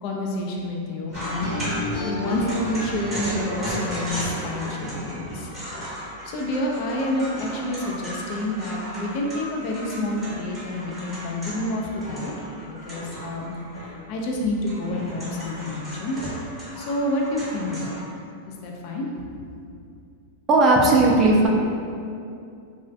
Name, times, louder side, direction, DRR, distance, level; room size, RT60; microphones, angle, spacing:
voice 1, 0.0-1.5 2.0-12.3 12.7-16.2 16.8-18.0 18.6-19.1, left 1 dB, 50° left, -1 dB, 0.4 m, -29 dB
sound 1, 1.1-4.8, left 1 dB, 80° left, 0.8 m, -33 dB
sound 2, 1.1-14.2 14.5-18.0, equal, 10° right, 0.7 m, -35 dB
voice 2, 20.5-21.5, right 2 dB, 30° right, -2 dB, 0.3 m, -16 dB
2.3 x 2.1 x 2.6 m, 2.5 s
supercardioid pair, 135°, 0 cm